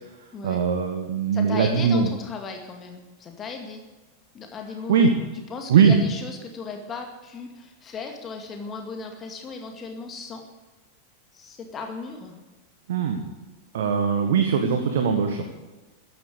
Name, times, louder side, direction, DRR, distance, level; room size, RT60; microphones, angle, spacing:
voice 1, 0.4-2.1 4.9-5.1 5.7-5.9 12.9-13.2 13.7-15.4, right 6 dB, 60° right, 5 dB, 1.6 m, -20 dB
voice 2, 1.3-3.8 4.3-5.1 5.5-10.4 11.3-12.4, left 4 dB, 25° left, 4 dB, 2.2 m, -36 dB
14.5 x 10.5 x 8.0 m, 1.2 s
figure-of-eight pair, 90°, 0 cm